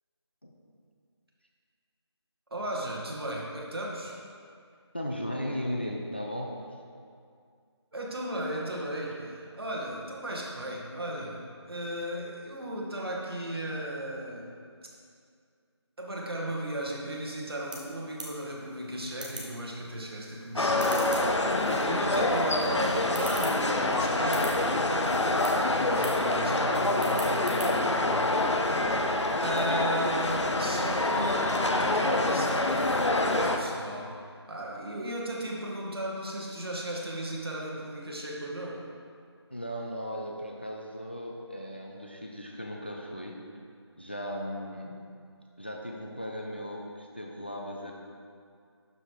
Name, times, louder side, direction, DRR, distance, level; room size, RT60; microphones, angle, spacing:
voice 1, 2.5-4.2 7.9-14.5 16.0-34.1 34.5-38.8, right 1 dB, 60° right, -3 dB, 1.9 m, -36 dB
voice 2, 4.9-6.6 39.5-43.5 44.0-45.0 45.6-47.9, equal, 25° left, 0 dB, 0.4 m, -36 dB
sound 1, 17.1-29.9, right 1 dB, 15° right, 0.7 m, -46 dB
sound 2, 20.6-33.6, left 2 dB, 85° left, 0.9 m, -26 dB
11.5 x 5.0 x 4.7 m, 2.3 s
figure-of-eight pair, 170°, 15 cm